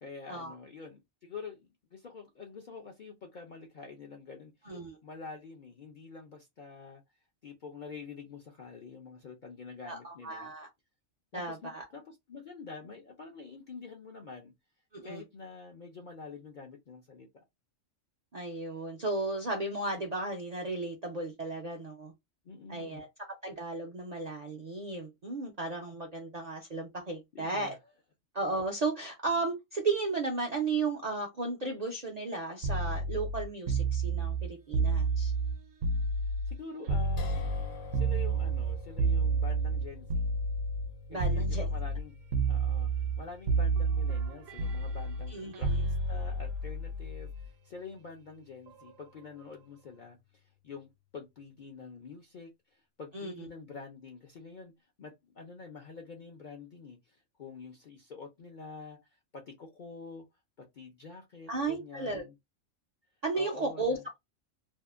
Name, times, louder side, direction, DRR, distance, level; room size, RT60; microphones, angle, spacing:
voice 1, 0.0-4.7 5.0-7.0 7.4-10.5 11.3-14.5 15.0-17.4 22.4-23.0 27.3-27.8 36.2-37.5 37.9-40.3 41.1-42.2 42.5-60.2 60.6-62.3 63.3-64.0, left 4 dB, 60° left, 0.5 m, -47 dB
voice 2, 4.7-5.0 9.8-10.7 11.3-11.8 14.9-15.2 18.3-22.1 22.7-23.1 23.4-27.7 28.3-35.3 41.1-41.7 45.3-45.8 53.1-53.5 61.5-62.2 63.2-64.0, right 3 dB, 55° right, 0.4 m, -34 dB
sound 1, 32.6-36.6 36.9-40.9 41.2-42.0 42.3-43.2 43.5-47.5 48.7-48.9, right 3 dB, 75° right, 0.9 m, -30 dB
sound 2, 37.2-49.5, left 1 dB, 80° left, 1.1 m, -48 dB
2.7 x 2.4 x 2.3 m
omnidirectional pair, 1.4 m